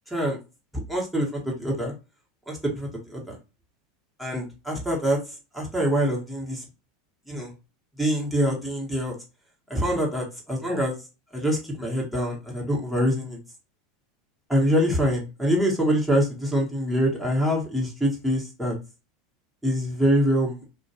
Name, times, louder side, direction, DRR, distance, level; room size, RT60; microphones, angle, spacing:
voice 1, 0.1-0.4 0.9-1.9 2.5-3.4 4.2-6.6 7.3-7.5 8.0-9.2 9.7-11.0 11.3-13.4 14.5-18.7 19.6-20.6, equal, ahead, -3 dB, 1.1 m, -25 dB
2.5 x 2.2 x 2.7 m, 0.29 s
hypercardioid pair, 100°, 0 cm